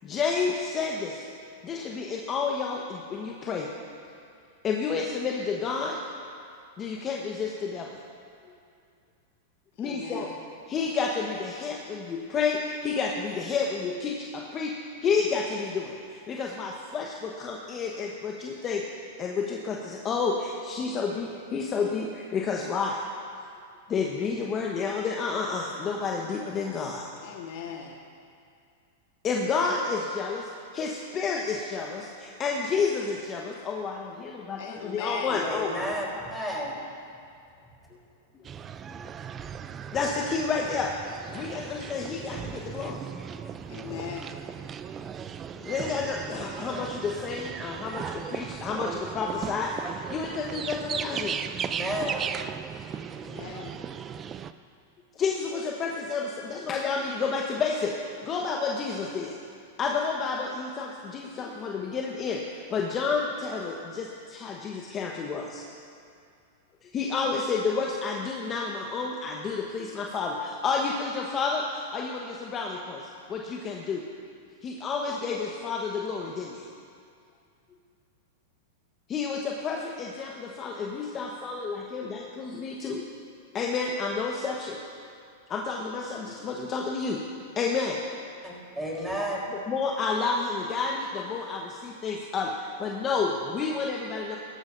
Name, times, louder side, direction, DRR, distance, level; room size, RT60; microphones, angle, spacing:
voice 1, 0.0-1.3 1.6-3.7 4.6-6.0 6.8-7.9 9.8-10.3 10.7-23.0 23.9-27.0 29.2-34.6 34.9-35.9 36.1-36.3 39.9-40.9 41.3-43.0 43.9-44.0 45.0-45.1 45.6-51.4 55.1-59.4 59.8-65.6 66.8-73.0 73.3-74.0 74.6-76.7 79.1-83.0 83.5-84.8 85.5-87.2 87.5-88.0 89.5-94.4, left 5 dB, 30° left, -1 dB, 1.2 m, -30 dB
voice 2, 9.8-10.4 27.2-28.0 34.6-35.5 43.7-44.4 53.1-53.8, left 7 dB, 65° left, 1 dB, 1.5 m, -38 dB
voice 3, 35.4-36.7 51.7-52.2 88.4-89.4, equal, 5° right, -4 dB, 3.7 m, -32 dB
sound 1, 38.4-54.5, right 7 dB, 25° right, 0.4 m, -37 dB
18.0 x 13.5 x 2.6 m, 2.3 s
hypercardioid pair, 110°, 0 cm